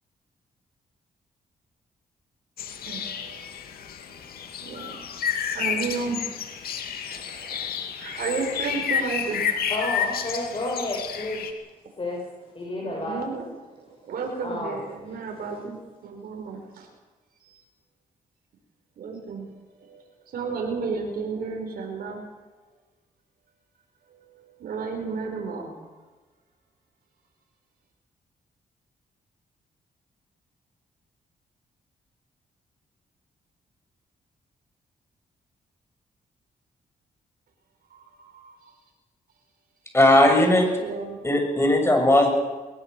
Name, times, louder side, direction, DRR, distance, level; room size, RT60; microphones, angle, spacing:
sound 1, 2.6-11.5, left 7 dB, 80° left, 2.4 m, -30 dB
voice 1, 2.9-3.4 4.1-4.2 4.6-5.0 5.4-6.3 7.0-7.7 8.0-9.7 12.8-13.4 13.8-15.8 16.0-16.9 17.4-17.6 19.0-19.5 19.9-20.0 20.3-22.2 24.6-25.7 37.9-38.7 40.8-41.2, right 4 dB, 75° right, 1 dB, 4.9 m, -33 dB
voice 2, 9.7-11.4 12.0-12.2 12.5-13.2 14.4-14.7 15.1-15.2, left 2 dB, 35° left, -3 dB, 6.8 m, -30 dB
voice 3, 39.9-40.7 41.2-42.3, left 1 dB, 15° left, 3 dB, 7.3 m, -18 dB
21.0 x 21.0 x 6.8 m, 1.2 s
cardioid pair, 75°, 15 cm